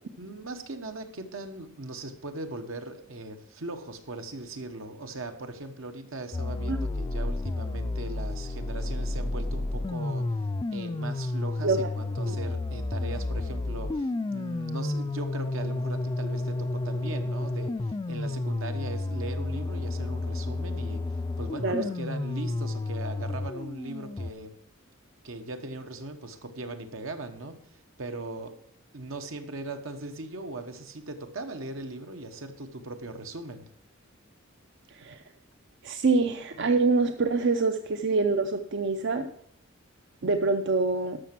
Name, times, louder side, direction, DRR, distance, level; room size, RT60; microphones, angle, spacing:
voice 1, 0.2-10.4 10.7-21.0 21.4-24.6 25.2-27.6 28.0-28.6 28.9-33.7, right 2 dB, 80° right, 7 dB, 1.2 m, -39 dB
sound 1, 6.3-24.3, left 2 dB, 20° left, 0.3 m, -31 dB
voice 2, 34.9-35.2 35.8-39.3 40.2-41.2, right 3 dB, 60° right, 8 dB, 0.6 m, -25 dB
13.0 x 6.0 x 6.0 m, 0.69 s
head